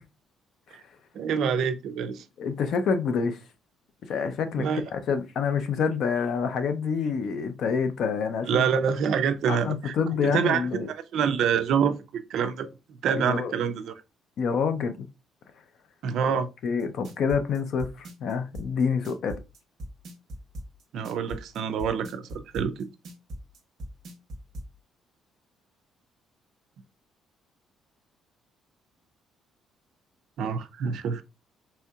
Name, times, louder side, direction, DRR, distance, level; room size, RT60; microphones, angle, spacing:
voice 1, 1.1-2.2 4.6-4.8 8.5-9.9 10.2-10.6 10.9-12.7 13.0-13.9 16.0-16.5 20.9-22.9 30.4-31.2, right 7 dB, 60° right, 0.4 m, -26 dB
voice 2, 2.4-3.4 4.1-4.7 4.9-8.7 9.5-10.9 13.1-13.5 14.4-15.1 16.2-16.3 16.6-19.4, left 6 dB, 55° left, 0.5 m, -27 dB
sound 1, 16.8-24.7, equal, 45° right, 1.0 m, -39 dB
4.2 x 2.7 x 2.3 m
cardioid pair, 175°, 0 cm